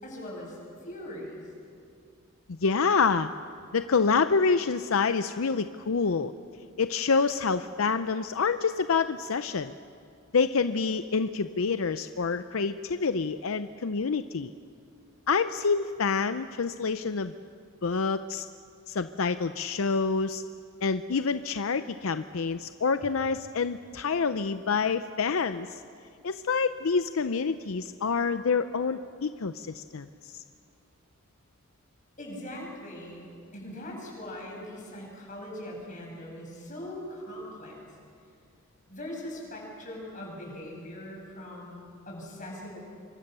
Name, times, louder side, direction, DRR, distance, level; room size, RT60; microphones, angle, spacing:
voice 1, 0.0-1.4 32.2-37.8 38.9-42.8, left 1 dB, 40° left, -2 dB, 7.6 m, -41 dB
voice 2, 2.5-3.3 3.7-6.3 6.8-9.7 10.3-14.5 15.3-17.3 17.8-18.5 18.9-20.4 20.8-25.8 26.2-30.4, left 5 dB, 80° left, 10 dB, 0.6 m, -27 dB
27.0 x 24.0 x 6.8 m, 2.5 s
head